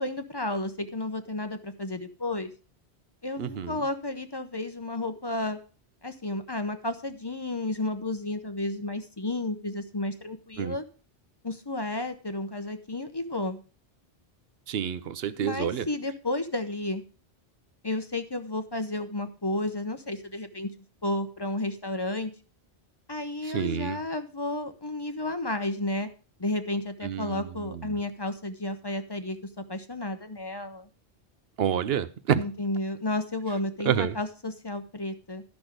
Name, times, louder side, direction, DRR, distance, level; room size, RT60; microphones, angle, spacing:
voice 1, 0.0-2.5 3.2-5.6 6.0-10.8 11.4-13.6 15.4-17.0 17.8-20.7 21.0-22.3 23.1-26.1 26.4-30.9 32.4-35.4, left 2 dB, 25° left, 0.7 m, -32 dB
voice 2, 3.4-3.8 10.6-10.7 14.7-15.9 23.5-24.0 27.0-28.0 31.6-32.4 33.9-34.2, right 9 dB, 70° right, 0.9 m, -28 dB
12.0 x 6.1 x 5.0 m
omnidirectional pair, 1.1 m